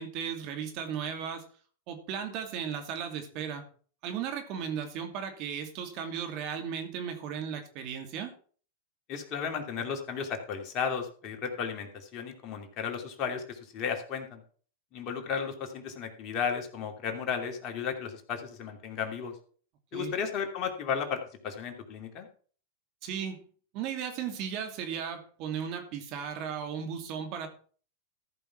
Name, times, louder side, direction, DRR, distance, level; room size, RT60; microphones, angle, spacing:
voice 1, 0.0-1.4 1.9-3.6 4.0-8.3 19.9-20.1 23.0-23.4 23.7-27.5, right 7 dB, 50° right, 6 dB, 2.5 m, -36 dB
voice 2, 9.1-14.4 14.9-19.3 19.9-22.3, left 6 dB, 40° left, 3 dB, 2.7 m, -34 dB
14.0 x 5.6 x 5.9 m, 0.44 s
hypercardioid pair, 105°, 0 cm